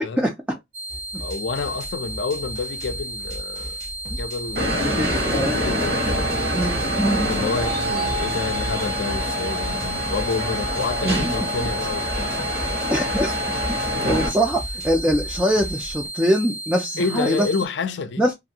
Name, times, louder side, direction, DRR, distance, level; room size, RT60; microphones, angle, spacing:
voice 1, 0.2-0.6 4.1-4.2 4.8-5.6 6.5-7.3 11.0-11.3 12.9-13.3 13.7-14.6 14.8-17.5 18.2-18.3, equal, 10° right, 0.3 m, -23 dB
sound 1, 0.7-17.7, right 2 dB, 75° right, 0.8 m, -34 dB
sound 2, 0.9-16.1, equal, 40° right, 0.7 m, -36 dB
voice 2, 1.2-3.8 4.2-6.5 7.3-12.4 14.0-14.3 17.0-18.2, left 4 dB, 65° left, 0.4 m, -29 dB
sound 3, 4.6-14.3, equal, 55° right, 1.0 m, -26 dB
2.6 x 2.4 x 2.7 m
head